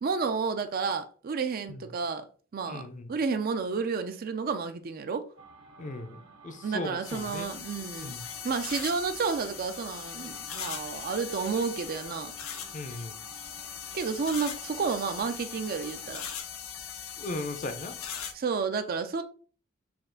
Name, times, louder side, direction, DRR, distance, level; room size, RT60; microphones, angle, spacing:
voice 1, 0.0-2.3 2.5-5.3 6.6-8.1 8.4-12.3 13.9-16.2 18.3-19.2, right 5 dB, 45° right, 0.4 m, -31 dB
voice 2, 2.6-3.1 5.8-7.5 8.0-8.2 12.7-13.2 17.2-18.0, left 2 dB, 35° left, 0.5 m, -37 dB
sound 1, 5.4-16.4, right 4 dB, 85° right, 1.0 m, -53 dB
sound 2, 7.0-18.3, left 8 dB, 85° left, 0.7 m, -40 dB
4.2 x 2.4 x 3.7 m
head